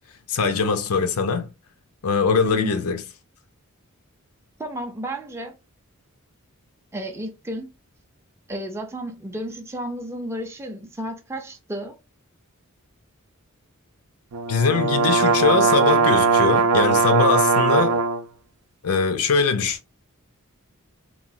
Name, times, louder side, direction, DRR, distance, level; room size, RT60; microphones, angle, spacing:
voice 1, 0.3-1.5 2.0-3.0 14.5-18.0 18.8-19.8, left 5 dB, 80° left, 0.6 m, -22 dB
voice 2, 2.4-2.8 4.6-5.5 6.9-7.7 8.5-12.0, equal, 10° right, 0.4 m, -32 dB
sound 1, 14.3-18.2, right 5 dB, 85° right, 0.5 m, -19 dB
3.0 x 2.3 x 2.6 m
head